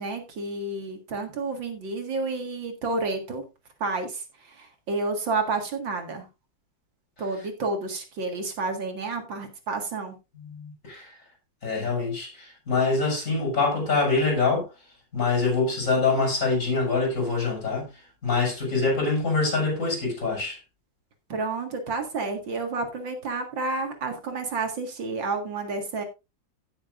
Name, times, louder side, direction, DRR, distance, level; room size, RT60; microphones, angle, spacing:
voice 1, 0.0-3.4 3.8-6.3 7.2-10.2 21.3-26.0, right 3 dB, 70° right, 2.6 m, -30 dB
voice 2, 10.4-11.1 11.6-14.7 15.1-20.6, left 4 dB, 40° left, 6.5 m, -25 dB
17.0 x 7.3 x 2.5 m
omnidirectional pair, 2.2 m